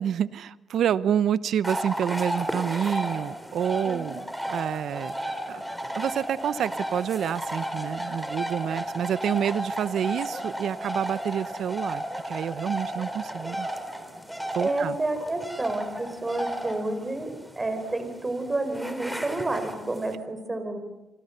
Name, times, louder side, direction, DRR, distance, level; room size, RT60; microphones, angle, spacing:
voice 1, 0.0-5.6 5.9-13.7 14.5-15.0, right 9 dB, 65° right, 16 dB, 0.8 m, -28 dB
sound 1, 1.6-20.1, equal, 5° right, 3.6 m, -34 dB
voice 2, 3.8-4.2 14.6-20.8, right 2 dB, 20° right, 8 dB, 5.1 m, -30 dB
29.5 x 24.5 x 6.8 m, 1.0 s
cardioid pair, 90°, 0 cm